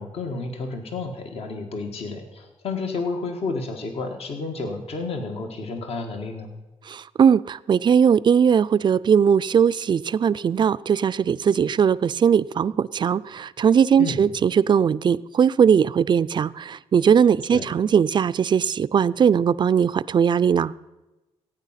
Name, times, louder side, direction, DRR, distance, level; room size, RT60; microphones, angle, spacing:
voice 1, 0.0-6.5 14.0-14.2 17.5-17.7, left 3 dB, 65° left, 5 dB, 1.5 m, -31 dB
voice 2, 6.9-20.7, right 7 dB, 45° right, 17 dB, 0.4 m, -19 dB
15.5 x 9.0 x 5.7 m, 1.1 s
cardioid pair, 90°, 11 cm